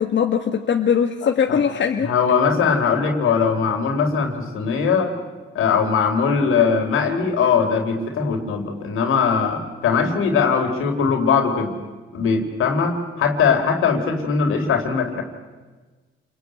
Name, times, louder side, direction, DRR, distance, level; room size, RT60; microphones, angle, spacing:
voice 1, 0.0-2.1, left 7 dB, 65° left, 4 dB, 1.7 m, -20 dB
voice 2, 1.2-1.6 2.0-5.1 5.5-11.8 12.1-15.2, left 5 dB, 90° left, 4 dB, 3.9 m, -20 dB
28.0 x 22.5 x 9.3 m, 1.3 s
cardioid pair, 80°, 21 cm